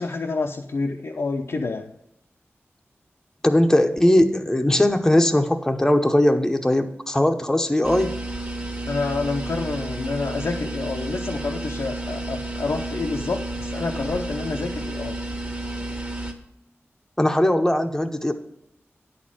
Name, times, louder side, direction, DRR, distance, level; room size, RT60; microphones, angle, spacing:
voice 1, 0.0-1.9 8.9-15.2, left 3 dB, 70° left, 1 dB, 0.7 m, -28 dB
voice 2, 3.4-8.1 17.2-18.3, left 1 dB, 10° left, 5 dB, 0.8 m, -19 dB
sound 1, 7.8-16.3, right 1 dB, 25° right, 1.4 m, -31 dB
10.5 x 4.3 x 7.5 m, 0.80 s
wide cardioid pair, 90°, 5 cm